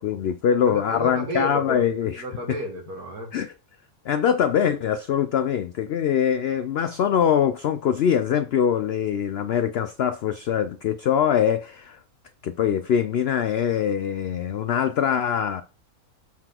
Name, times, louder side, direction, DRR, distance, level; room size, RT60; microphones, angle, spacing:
voice 1, 0.0-2.2 3.3-3.5 4.1-12.0 12.4-15.6, left 8 dB, 80° left, 0.5 m, -23 dB
voice 2, 0.6-3.3, equal, 80° right, 2.6 m, -32 dB
7.4 x 3.9 x 4.4 m
omnidirectional pair, 1.6 m